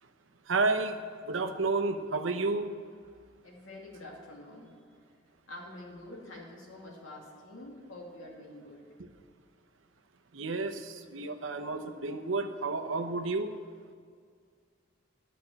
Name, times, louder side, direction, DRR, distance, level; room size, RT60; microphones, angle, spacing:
voice 1, 0.5-1.0 1.2-2.7 10.3-13.5, right 3 dB, 80° right, 7 dB, 0.8 m, -31 dB
voice 2, 3.4-4.7 5.5-8.9, left 1 dB, 90° left, -2 dB, 2.6 m, -47 dB
11.5 x 6.0 x 8.7 m, 2.1 s
head